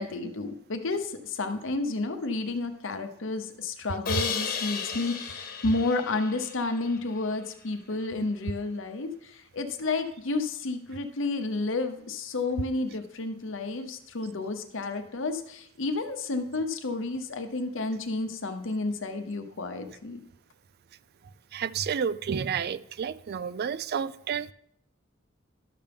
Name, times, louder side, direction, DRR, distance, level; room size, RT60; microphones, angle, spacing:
voice 1, 0.0-20.2, left 3 dB, 65° left, 0.9 m, -31 dB
Crash cymbal, 4.1-7.1, left 6 dB, 45° left, 1.2 m, -34 dB
voice 2, 21.5-24.5, right 7 dB, 50° right, 0.4 m, -30 dB
12.0 x 6.8 x 3.5 m
head